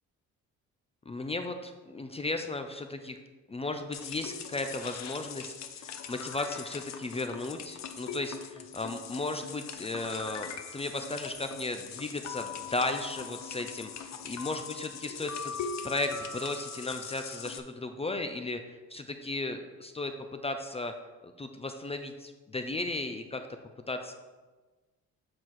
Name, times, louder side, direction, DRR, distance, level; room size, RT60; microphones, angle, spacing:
voice 1, 1.1-3.2 3.5-15.5 15.8-20.1 20.4-20.9 21.2-23.4 23.9-24.1, left 2 dB, 20° left, 6 dB, 0.5 m, -35 dB
sound 1, 3.9-17.6, left 6 dB, 65° left, 0.7 m, -41 dB
7.6 x 4.4 x 4.7 m, 1.3 s
cardioid pair, 90°, 30 cm